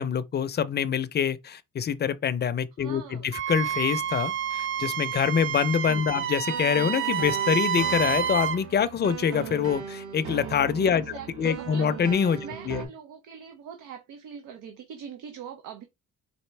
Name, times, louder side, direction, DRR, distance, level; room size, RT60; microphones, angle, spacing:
voice 1, 0.0-12.4 12.7-12.8, left 7 dB, 35° left, 0.5 m, -25 dB
voice 2, 2.8-3.3 6.0-6.3 10.9-11.9 12.4-15.8, right 7 dB, 90° right, 0.7 m, -43 dB
Wind instrument woodwind instrument, 3.3-8.6, right 8 dB, 45° right, 0.4 m, -29 dB
sound 1, 3.5-12.9, right 7 dB, 65° right, 1.2 m, -39 dB
4.3 x 2.6 x 3.2 m
cardioid pair, 90°, 30 cm